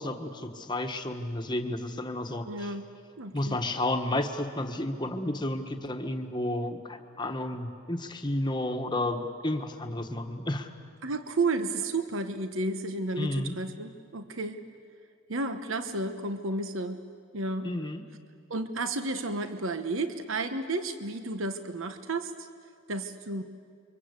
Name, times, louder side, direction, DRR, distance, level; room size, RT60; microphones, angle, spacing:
voice 1, 0.0-2.7 3.3-10.7 13.2-13.5 17.6-18.0, left 1 dB, 20° left, 5 dB, 1.4 m, -32 dB
voice 2, 2.4-2.9 3.2-3.6 11.0-14.6 15.3-17.0 17.3-17.7 18.5-22.5 22.9-23.4, right 2 dB, 65° right, 9 dB, 1.2 m, -32 dB
29.5 x 24.5 x 8.3 m, 2.2 s
head